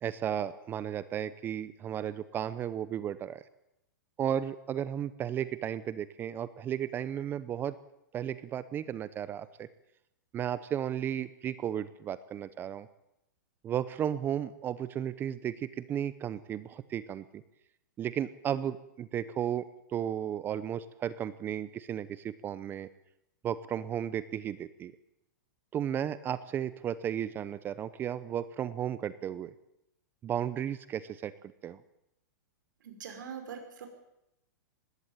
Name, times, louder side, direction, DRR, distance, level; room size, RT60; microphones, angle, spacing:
voice 1, 0.0-3.4 4.2-7.8 8.1-9.7 10.3-12.9 13.6-17.4 18.0-22.9 23.4-24.9 25.7-29.5 30.2-31.3 31.6-31.8, right 9 dB, 20° right, 16 dB, 0.8 m, -34 dB
voice 2, 32.8-33.9, right 7 dB, 75° right, 5 dB, 6.1 m, -42 dB
20.0 x 16.5 x 9.1 m, 0.83 s
hypercardioid pair, 150°, 11 cm